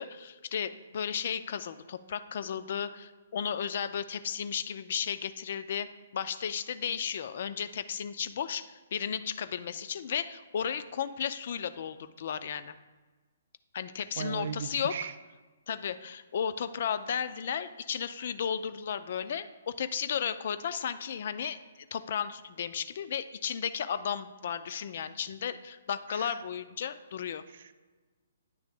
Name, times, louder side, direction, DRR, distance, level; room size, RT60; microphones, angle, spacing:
voice 1, 0.0-12.8 13.7-15.0 15.7-21.6 21.9-27.4, left 8 dB, 50° left, 12 dB, 0.3 m, -34 dB
voice 2, 14.2-15.1 26.1-26.4 27.5-27.7, right 7 dB, 55° right, 12 dB, 0.3 m, -37 dB
9.1 x 3.2 x 3.5 m, 1.3 s
figure-of-eight pair, 125°, 0 cm